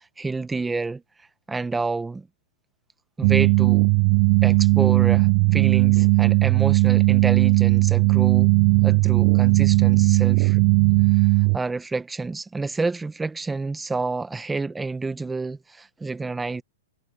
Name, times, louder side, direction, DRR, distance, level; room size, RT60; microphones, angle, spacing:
voice 1, 0.2-1.0 1.5-2.3 3.2-3.8 4.4-8.5 8.8-10.6 11.2-11.3 11.5-16.6, right 3 dB, 10° right, 1.4 m, -29 dB
sound 1, 3.2-11.6, right 28 dB, 45° right, 0.5 m, -17 dB
hypercardioid pair, 145°, 0 cm